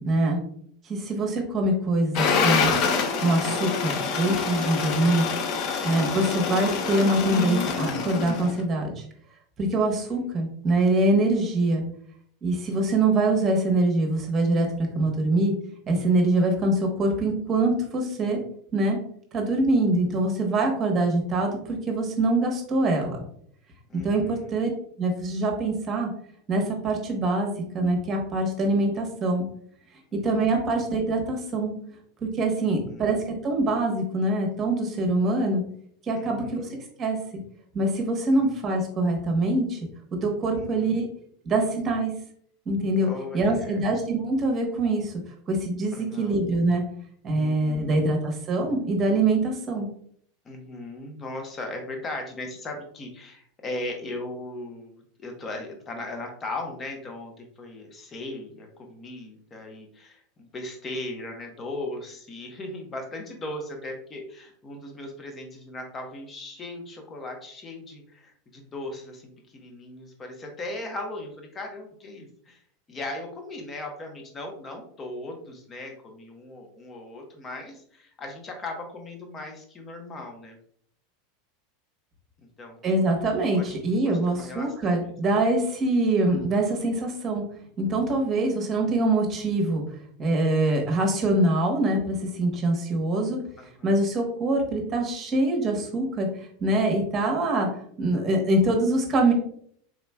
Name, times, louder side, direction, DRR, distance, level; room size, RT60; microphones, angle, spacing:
voice 1, 0.0-0.4 0.9-2.8 3.2-5.3 5.8-9.0 9.6-11.8 12.4-14.7 14.9-15.5 15.9-18.4 18.7-19.0 19.3-23.2 23.9-24.7 25.0-26.1 26.5-29.4 30.2-31.7 32.2-35.6 36.0-36.7 37.0-37.2 37.7-39.8 40.2-41.1 41.4-42.1 42.7-43.1 43.3-45.1 45.5-46.8 47.2-49.9 82.8-87.4 87.8-89.8 90.2-93.4 93.8-96.3 96.6-97.7 98.0-99.3, right 2 dB, 30° right, 2 dB, 1.1 m, -24 dB
sound 1, 2.1-8.6, left 5 dB, 50° left, 0.5 m, -26 dB
voice 2, 10.0-10.3 12.7-13.2 23.9-24.7 30.2-30.7 32.6-33.2 36.2-36.8 38.3-38.7 40.5-41.0 43.0-43.8 45.9-46.4 47.3-48.0 50.4-72.6 72.9-80.6 82.6-83.1 83.5-83.8 84.0-85.1 93.6-94.0, left 2 dB, 30° left, 3 dB, 0.9 m, -38 dB
3.7 x 3.0 x 2.2 m, 0.63 s
hypercardioid pair, 95°, 0 cm